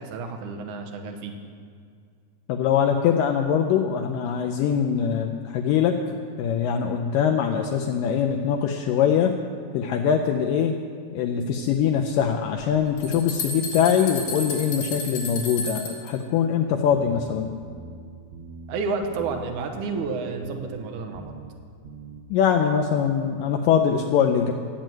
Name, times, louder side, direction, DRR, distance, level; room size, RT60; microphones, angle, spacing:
voice 1, 0.0-1.3 18.7-21.3, right 4 dB, 65° right, 4 dB, 2.1 m, -30 dB
voice 2, 2.5-6.0 6.4-9.4 9.7-10.8 11.1-17.5 22.3-24.5, left 8 dB, 85° left, 3 dB, 1.9 m, -22 dB
sound 1, 12.6-12.7 13.0-16.1, left 2 dB, 55° left, 2.9 m, -32 dB
sound 2, 16.9-17.3 17.6-18.0 18.3-18.7 19.0-19.4 19.7-20.1 20.4-20.8 21.1-21.5 21.8-22.2, right 5 dB, 85° right, 3.0 m, -42 dB
11.5 x 7.6 x 9.1 m, 2.2 s
omnidirectional pair, 4.6 m